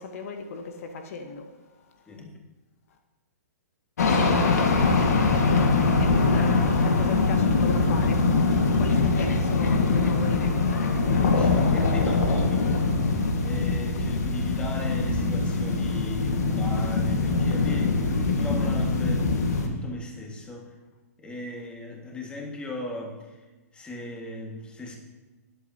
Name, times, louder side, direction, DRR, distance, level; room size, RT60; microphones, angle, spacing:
voice 1, 0.0-1.5 6.0-10.7, left 4 dB, 60° left, 1.1 m, -36 dB
sound 1, 4.0-19.7, left 3 dB, 75° left, 1.6 m, -23 dB
voice 2, 11.0-12.7 13.4-20.7 21.2-23.4 23.7-24.9, left 2 dB, 10° left, 1.8 m, -37 dB
19.0 x 8.0 x 2.8 m
hypercardioid pair, 140°, 9 cm